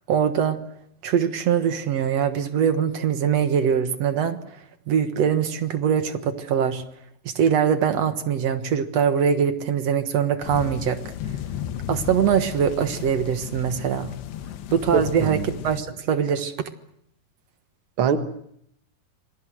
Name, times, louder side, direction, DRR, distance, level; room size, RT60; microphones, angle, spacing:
voice 1, 0.1-0.6 1.0-4.4 4.9-6.8 7.3-11.0 11.9-14.1 14.7-16.5, right 8 dB, 60° right, 9 dB, 1.7 m, -22 dB
sound 1, 10.4-15.8, left 10 dB, 80° left, 3.3 m, -34 dB
voice 2, 14.9-15.4 18.0-18.2, right 7 dB, 90° right, 8 dB, 1.1 m, -23 dB
27.5 x 22.0 x 7.8 m, 0.73 s
omnidirectional pair, 4.8 m